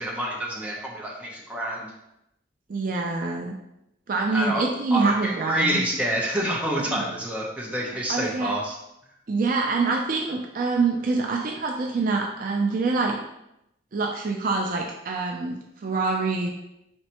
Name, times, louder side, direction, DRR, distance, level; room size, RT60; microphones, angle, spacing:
voice 1, 0.0-1.9 4.3-8.7, right 1 dB, 5° right, -4 dB, 0.7 m, -28 dB
voice 2, 2.7-3.5 4.1-5.8 6.9-7.0 8.1-8.5 9.3-13.2 13.9-16.5, right 3 dB, 45° right, 1 dB, 0.4 m, -25 dB
4.3 x 3.1 x 2.9 m, 0.83 s
head